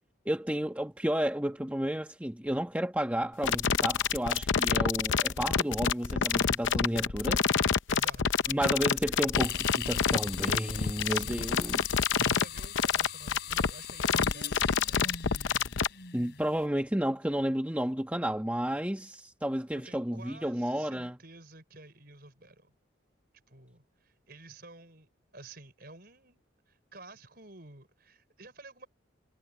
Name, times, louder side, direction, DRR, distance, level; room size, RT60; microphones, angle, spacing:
voice 1, 0.2-7.4 8.5-11.8 16.1-21.1, equal, 5° right, 1.4 m, -31 dB
sound 1, 3.4-15.9, left 6 dB, 70° left, 0.6 m, -27 dB
voice 2, 7.9-8.7 11.0-15.2 19.7-22.7 23.5-26.4 26.7-28.9, right 2 dB, 50° right, 4.9 m, -51 dB
sound 2, 9.3-16.6, left 9 dB, 55° left, 4.8 m, -41 dB
head